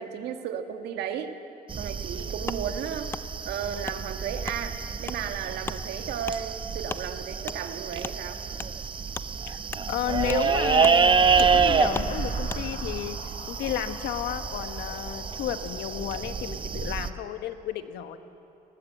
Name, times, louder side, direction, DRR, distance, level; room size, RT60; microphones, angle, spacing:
voice 1, 0.0-1.4 1.8-3.1 3.4-8.4, right 8 dB, 75° right, 6 dB, 1.6 m, -34 dB
sound 1, 1.7-17.1, right 5 dB, 30° right, 0.8 m, -28 dB
Wood, 2.5-2.6 3.1-3.2 3.8-4.0 4.4-4.6 5.0-5.2 5.6-5.8 6.2-6.4 6.9-7.0 7.5-7.6 8.0-8.2 8.6-8.7 9.1-9.3 9.7-9.9 10.3-10.5 10.8-11.0 11.4-11.5 11.9-12.1 12.5-12.6, left 3 dB, 15° left, 0.4 m, -35 dB
voice 2, 9.9-13.2 13.5-18.2, left 10 dB, 75° left, 9 dB, 1.2 m, -32 dB
sound 2, 10.2-16.5, left 2 dB, 40° left, 6.3 m, -44 dB
19.0 x 18.5 x 7.7 m, 2.7 s
cardioid pair, 110°, 17 cm